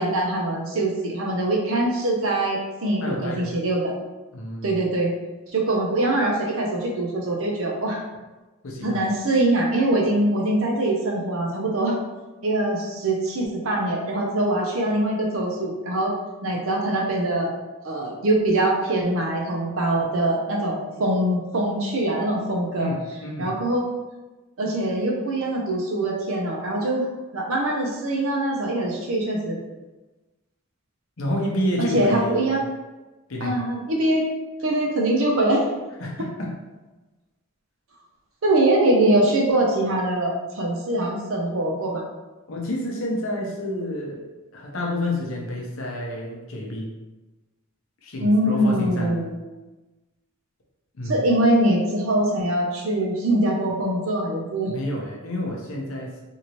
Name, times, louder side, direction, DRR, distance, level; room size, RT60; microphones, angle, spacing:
voice 1, 0.0-4.0 4.6-5.1 5.5-8.0 8.8-12.0 12.4-16.1 16.4-17.5 17.8-22.9 23.4-23.9 24.6-27.0 27.3-29.6 31.8-32.6 33.4-34.2 34.6-35.6 38.4-42.0 48.2-49.4 51.1-54.7, right 1 dB, 70° right, 0 dB, 0.7 m, -23 dB
voice 2, 3.0-3.5 4.3-4.8 8.6-9.0 22.8-23.5 31.2-32.5 33.3-33.6 36.0-36.6 42.5-44.2 44.5-46.9 48.0-49.2 51.0-51.3 54.6-56.2, left 1 dB, 70° left, -2 dB, 0.7 m, -29 dB
2.8 x 2.6 x 3.0 m, 1.1 s
head